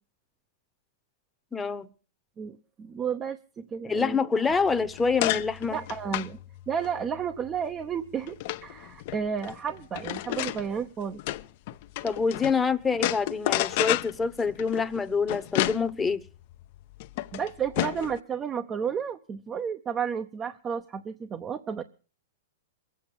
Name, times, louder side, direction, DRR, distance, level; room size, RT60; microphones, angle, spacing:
voice 1, 1.5-1.9 3.8-5.8 12.0-16.2, left 5 dB, 10° left, 1.0 m, -26 dB
voice 2, 2.4-4.2 5.7-6.4 6.7-8.3 8.6-11.2 17.3-21.8, right 7 dB, 20° right, 0.8 m, -32 dB
sound 1, 4.5-12.6 12.9-18.2, left 16 dB, 50° left, 0.7 m, -32 dB
22.0 x 8.6 x 7.1 m
hypercardioid pair, 140°, 0 cm